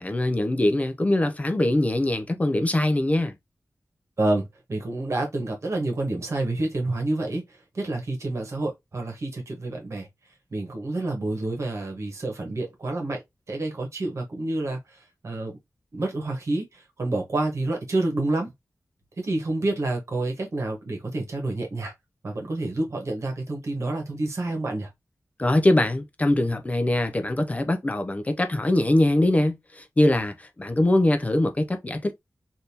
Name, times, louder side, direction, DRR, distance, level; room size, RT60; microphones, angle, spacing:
voice 1, 0.0-3.3 25.4-32.1, left 1 dB, 25° left, 0.4 m, -22 dB
voice 2, 4.2-7.4 7.7-10.1 10.5-13.2 13.5-14.8 15.2-15.5 15.9-18.5 19.2-21.9 22.2-24.9, right 2 dB, 60° right, 1.2 m, -28 dB
3.4 x 2.6 x 2.8 m
wide cardioid pair, 105°, 6 cm